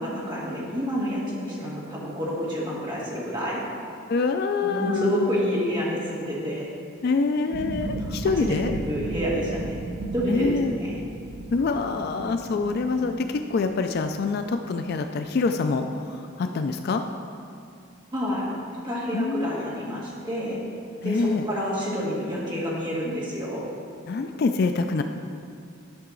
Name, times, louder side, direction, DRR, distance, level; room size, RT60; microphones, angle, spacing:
voice 1, 0.0-3.6 4.6-6.7 7.8-9.7 10.1-10.9 18.1-18.5 18.8-20.6 21.0-23.6, equal, 20° right, -6 dB, 1.6 m, -29 dB
voice 2, 4.1-5.3 7.0-8.7 10.3-10.8 11.5-17.0 19.1-19.5 21.0-21.5 24.1-25.0, left 4 dB, 50° left, 7 dB, 0.3 m, -25 dB
sound 1, 7.5-17.7 18.0-18.7 19.1-19.2, right 2 dB, 65° right, 0.6 m, -36 dB
11.0 x 5.7 x 3.8 m, 2.5 s
head